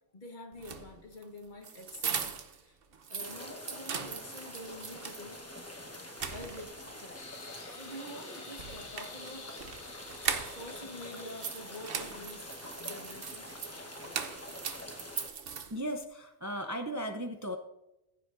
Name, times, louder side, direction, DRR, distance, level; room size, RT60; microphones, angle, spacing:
voice 1, 0.1-2.8 3.1-5.4 6.3-7.4 7.7-9.6 10.4-12.5 12.8-13.6 14.2-14.4, left 1 dB, 45° left, 3 dB, 1.5 m, -47 dB
sound 1, 0.5-2.6 2.9-5.3 5.7-5.8 6.1-6.9 8.5-10.8 11.1-16.0, right 6 dB, 60° right, 1.0 m, -39 dB
sound 2, 3.2-15.3, left 1 dB, 15° left, 1.1 m, -46 dB
sound 3, 7.1-12.8, left 4 dB, 80° left, 1.5 m, -51 dB
voice 2, 13.7-14.0 15.7-17.6, equal, 20° right, 4 dB, 0.5 m, -37 dB
15.0 x 8.9 x 2.6 m, 0.92 s
omnidirectional pair, 1.2 m